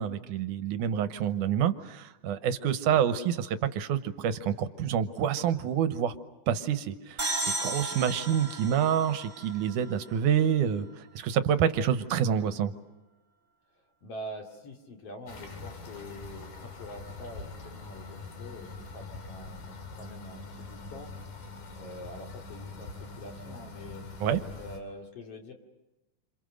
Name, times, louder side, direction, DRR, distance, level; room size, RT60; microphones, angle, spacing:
voice 1, 0.0-6.1 6.5-10.9 11.2-12.7 24.2-24.4, right 9 dB, 70° right, 11 dB, 2.4 m, -27 dB
sound 1, 7.2-10.7, right 2 dB, 15° right, 1.8 m, -35 dB
voice 2, 13.7-21.1 21.8-24.2 24.6-25.5, left 1 dB, 45° left, 3 dB, 3.5 m, -45 dB
sound 2, 15.3-24.8, left 3 dB, 70° left, 4.6 m, -43 dB
28.0 x 27.5 x 6.5 m, 1.0 s
omnidirectional pair, 4.0 m